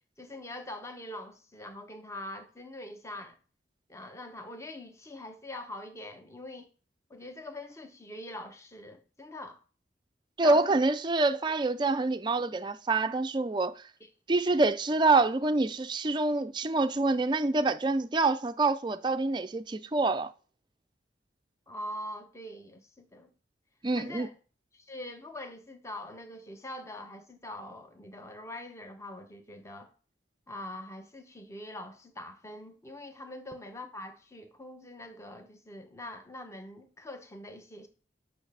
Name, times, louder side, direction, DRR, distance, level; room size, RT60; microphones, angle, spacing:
voice 1, 0.2-3.4 3.9-6.7 7.1-9.6 10.4-10.7 11.8-11.9 21.7-23.3 24.0-24.3 24.7-29.9 30.5-37.9, left 1 dB, 15° left, 0.8 m, -43 dB
voice 2, 10.4-13.7 14.3-20.3 23.8-24.3, right 3 dB, 25° right, 0.4 m, -26 dB
8.9 x 5.8 x 3.4 m
head